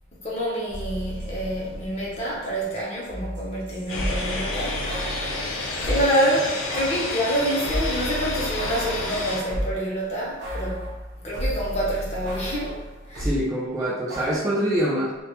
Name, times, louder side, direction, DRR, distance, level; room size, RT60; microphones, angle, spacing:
voice 1, 0.1-4.8 5.8-13.3, equal, 30° left, -5 dB, 0.6 m, -27 dB
sound 1, 0.7-2.5 2.7-6.1 6.7-9.9 10.4-13.4 14.1-14.4, equal, 55° right, 0.6 m, -33 dB
sound 2, 3.9-9.4, left 2 dB, 75° left, 0.4 m, -30 dB
voice 2, 13.1-15.2, equal, 15° right, -7 dB, 0.3 m, -25 dB
2.1 x 2.1 x 2.8 m, 1.2 s
head